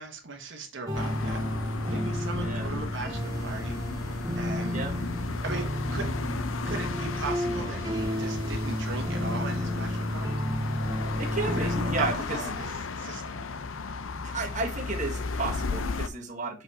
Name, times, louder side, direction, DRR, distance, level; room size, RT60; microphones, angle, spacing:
voice 1, 0.0-4.8 5.4-6.1 6.7-10.4 11.5-13.4, right 3 dB, 60° right, 3 dB, 1.3 m, -38 dB
sound 1, 0.9-16.1, left 4 dB, 75° left, 0.6 m, -35 dB
sound 2, 0.9-12.1, equal, 15° right, 1.8 m, -31 dB
voice 2, 11.2-12.4 14.3-16.6, right 3 dB, 35° right, 0 dB, 1.4 m, -32 dB
6.3 x 5.3 x 2.9 m, 0.33 s
head